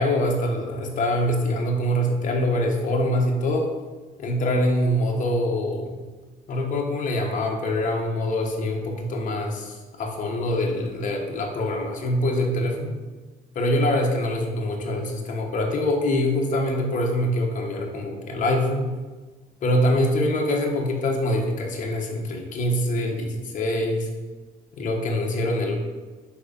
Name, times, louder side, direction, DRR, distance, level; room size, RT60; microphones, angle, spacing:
voice 1, 0.0-3.7 4.2-6.0 6.5-12.9 13.5-18.9 19.6-24.1 24.8-25.8, left 1 dB, 50° left, 1 dB, 1.2 m, -24 dB
4.7 x 4.6 x 5.2 m, 1.3 s
cardioid pair, 110°, 17 cm